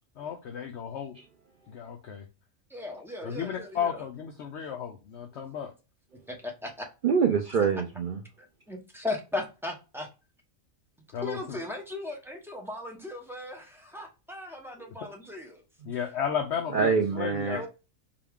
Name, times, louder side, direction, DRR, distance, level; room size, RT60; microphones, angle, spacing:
voice 1, 0.2-1.2 1.7-2.3 3.2-5.7 11.1-11.6 15.8-17.6, left 8 dB, 65° left, 0.8 m, -33 dB
voice 2, 2.7-4.0 6.3-6.8 8.4-10.1 11.2-15.6 17.5-17.7, left 2 dB, ahead, 0.6 m, -37 dB
voice 3, 7.0-8.2 15.8-15.9 16.7-17.7, right 6 dB, 65° right, 0.5 m, -25 dB
4.8 x 2.3 x 3.5 m
omnidirectional pair, 1.4 m